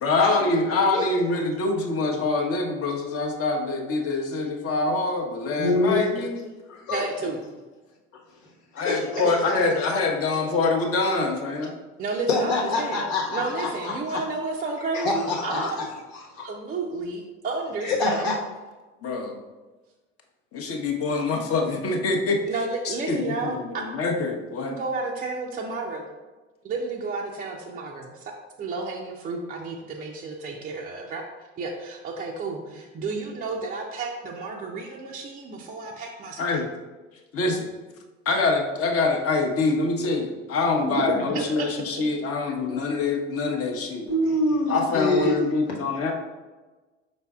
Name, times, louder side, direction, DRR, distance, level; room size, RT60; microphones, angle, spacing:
voice 1, 0.0-6.4 7.2-7.3 8.7-11.7 19.0-19.4 20.5-22.4 22.8-24.8 36.4-36.7 37.3-37.7 38.3-44.1 44.7-46.1, left 3 dB, 35° left, 2 dB, 0.8 m, -25 dB
voice 2, 5.6-6.1 6.7-7.1 8.8-9.4 10.3-10.7 12.3-14.2 14.9-15.9 16.3-16.5 17.8-18.3 44.1-45.4, left 2 dB, 65° left, -2 dB, 1.3 m, -26 dB
voice 3, 6.9-7.4 9.2-9.7 12.0-13.0 13.3-15.8 16.4-18.3 22.5-23.6 24.7-26.1 26.6-28.3 28.6-31.2 31.6-36.6 40.8-42.0, right 3 dB, 20° right, -1 dB, 0.5 m, -32 dB
5.2 x 4.2 x 2.3 m, 1.2 s
figure-of-eight pair, 70°, 40 cm